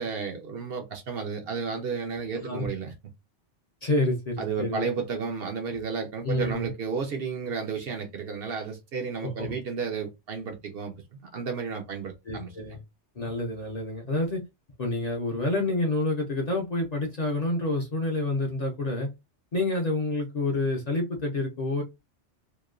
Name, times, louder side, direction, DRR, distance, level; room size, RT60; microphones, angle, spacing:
voice 1, 0.0-2.9 4.4-12.5, right 5 dB, 60° right, 0.8 m, -32 dB
voice 2, 3.8-4.9 6.2-6.7 9.2-9.5 12.3-12.8 13.2-14.4 14.8-19.1 19.5-21.8, left 2 dB, 45° left, 0.6 m, -28 dB
3.0 x 2.1 x 2.3 m
omnidirectional pair, 1.2 m